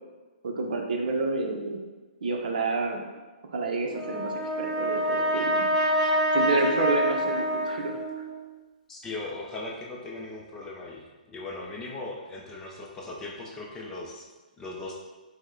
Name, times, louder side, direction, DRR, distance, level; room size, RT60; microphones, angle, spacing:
voice 1, 0.4-1.8 2.2-3.0 3.5-5.7 6.3-8.0, right 3 dB, 65° right, 2 dB, 0.7 m, -29 dB
Brass instrument, 3.9-8.3, equal, 10° right, 1.0 m, -26 dB
voice 2, 8.9-14.3 14.6-15.0, left 2 dB, 10° left, -3 dB, 0.5 m, -38 dB
5.1 x 2.1 x 3.7 m, 1.3 s
hypercardioid pair, 160°, 5 cm